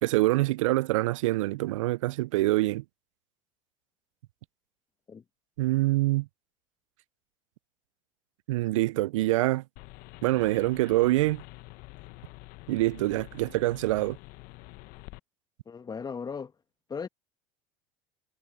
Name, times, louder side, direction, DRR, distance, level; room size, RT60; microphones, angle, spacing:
voice 1, 0.0-2.8 5.6-6.3 8.5-9.6 10.2-11.4 12.7-14.2, right 18 dB, 80° right, 0.5 m, -25 dB
sound 1, 9.8-15.2, left 23 dB, 60° left, 0.9 m, -47 dB
voice 2, 15.7-16.5 16.9-17.1, left 6 dB, 25° left, 1.4 m, -36 dB
hypercardioid pair, 85°, 16 cm